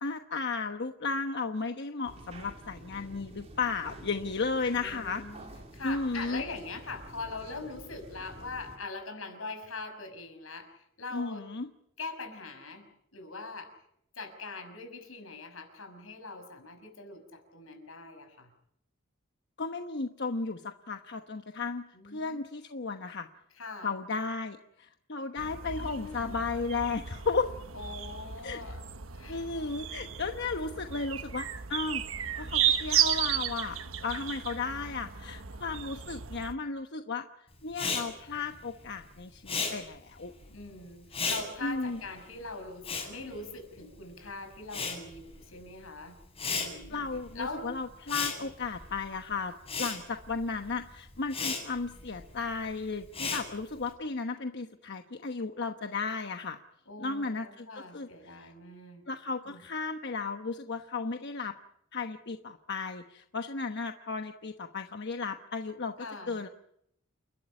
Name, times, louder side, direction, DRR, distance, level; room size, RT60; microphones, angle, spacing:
voice 1, 0.0-5.2 5.8-6.4 11.1-11.7 19.6-23.3 23.8-27.5 28.4-28.6 29.3-32.0 32.4-37.3 37.6-40.3 41.6-42.0 46.9-56.6 57.0-58.4 59.1-61.6 61.9-66.5, left 4 dB, 60° left, 6 dB, 1.1 m, -34 dB
sound 1, 2.0-8.8, right 1 dB, 35° right, 3.9 m, -49 dB
voice 2, 4.7-11.4 12.0-12.9 13.1-13.7 14.1-18.5 21.9-22.4 23.6-23.9 25.7-26.4 27.7-28.9 29.1-29.4 40.5-46.2 46.5-47.1 47.3-47.7 48.4-48.5 56.9-59.0 59.4-59.6 66.0-66.4, left 3 dB, 90° left, 6 dB, 6.2 m, -42 dB
sound 2, 25.4-36.5, right 10 dB, 80° right, 1.3 m, -34 dB
Respiratory sounds, 37.7-44.2 44.4-53.9, left 4 dB, 30° left, 7.9 m, -36 dB
29.5 x 12.5 x 9.8 m, 0.74 s
head